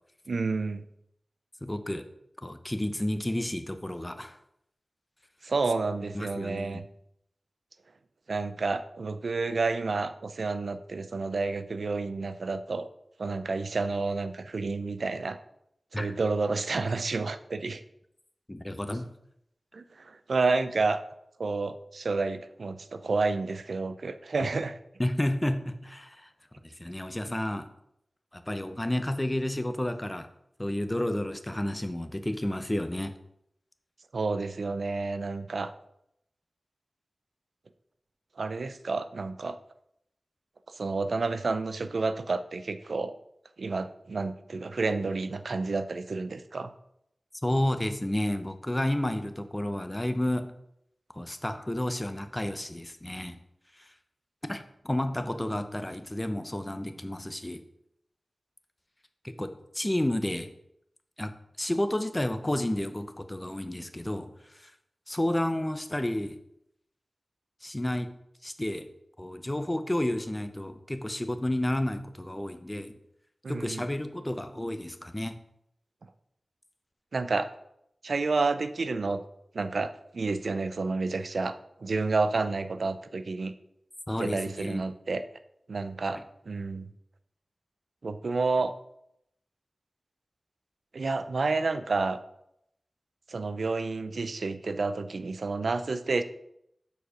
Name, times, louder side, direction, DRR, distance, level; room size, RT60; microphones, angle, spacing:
voice 1, 0.3-0.8 5.4-6.8 8.3-12.9 13.2-15.4 15.9-17.8 19.7-21.0 21.4-24.8 34.1-35.7 38.4-39.6 40.8-43.1 43.6-46.7 73.4-73.8 77.1-77.5 78.0-79.2 79.5-83.5 84.2-85.2 85.7-86.9 88.0-88.7 90.9-92.2 93.3-96.2, right 3 dB, 75° right, 11 dB, 0.4 m, -30 dB
voice 2, 1.6-2.1 2.4-4.4 6.1-6.8 15.9-16.1 18.5-19.1 24.4-24.5 25.0-26.3 26.8-27.7 28.3-30.3 30.6-33.1 47.4-50.5 51.1-53.4 53.8-53.9 54.4-57.6 59.4-60.5 61.2-64.7 65.1-66.4 67.6-68.1 68.4-68.9 69.2-72.9 73.5-75.3 84.1-84.8, left 1 dB, 20° left, 9 dB, 0.7 m, -31 dB
6.9 x 4.7 x 5.0 m, 0.76 s
wide cardioid pair, 60°, 0 cm